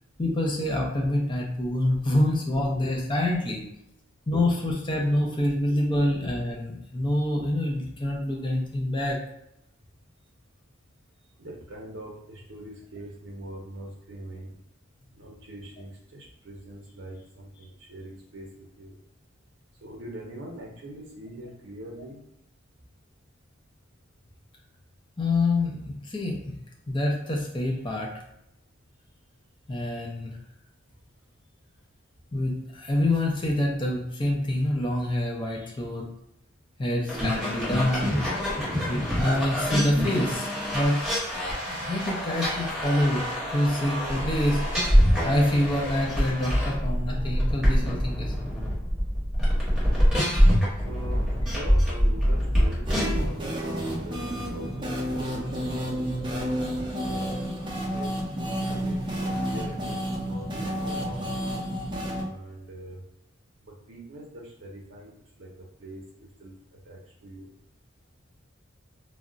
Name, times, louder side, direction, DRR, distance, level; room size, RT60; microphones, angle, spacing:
voice 1, 0.2-3.6 4.3-9.2 25.2-26.6 26.9-28.1 29.7-30.3 32.3-36.0 36.8-38.2 38.9-40.5 40.7-41.0 41.7-44.6 45.2-48.5, left 1 dB, 25° left, -2 dB, 0.5 m, -26 dB
voice 2, 11.4-14.5 15.1-19.0 19.8-22.3 38.1-38.3 50.8-55.3 55.7-57.3 57.9-58.1 58.6-60.0 60.3-61.4 62.2-63.0 63.6-65.1 65.4-65.5 65.8-66.0 66.4-66.5 66.9-67.5, right 1 dB, 65° right, -2 dB, 0.6 m, -43 dB
sound 1, 37.1-53.3, equal, 5° right, 0.9 m, -25 dB
sound 2, 52.9-62.2, equal, 25° right, 0.5 m, -30 dB
2.3 x 2.1 x 3.8 m, 0.79 s
head